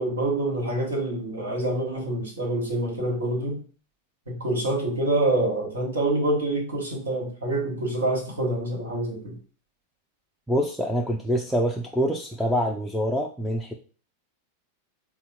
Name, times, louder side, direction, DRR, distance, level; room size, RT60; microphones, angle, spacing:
voice 1, 0.0-3.6 4.3-9.4, right 1 dB, 70° right, 0 dB, 1.4 m, -26 dB
voice 2, 10.5-13.7, equal, ahead, 2 dB, 0.4 m, -25 dB
4.0 x 2.0 x 4.4 m, 0.40 s
figure-of-eight pair, 90°, 0 cm